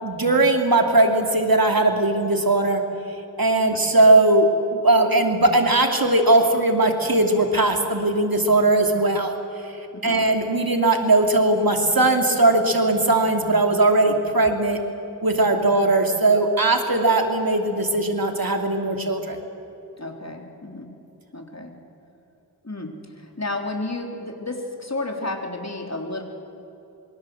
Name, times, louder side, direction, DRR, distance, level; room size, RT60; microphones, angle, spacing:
voice 1, 0.0-2.8 3.4-9.3 10.0-14.8 15.2-19.4, right 2 dB, 65° right, 4 dB, 2.9 m, -19 dB
voice 2, 9.9-10.2 20.0-20.9 21.3-21.8 22.6-26.2, left 2 dB, 45° left, 3 dB, 3.6 m, -32 dB
26.5 x 23.5 x 7.8 m, 3.0 s
wide cardioid pair, 40°, 38 cm